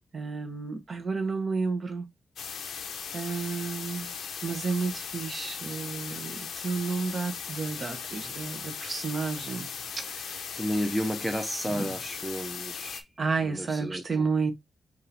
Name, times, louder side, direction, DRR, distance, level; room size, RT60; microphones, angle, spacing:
voice 1, 0.1-2.1 2.6-2.8 3.1-4.1 4.4-9.7 10.0-10.6 11.7-11.9 13.2-14.5, right 4 dB, 40° right, 0.9 m, -31 dB
sound 1, 2.4-13.0, left 6 dB, 90° left, 0.7 m, -38 dB
voice 2, 10.5-13.0 13.4-14.3, equal, 5° right, 0.6 m, -32 dB
5.4 x 2.6 x 3.2 m
wide cardioid pair, 145°, 0 cm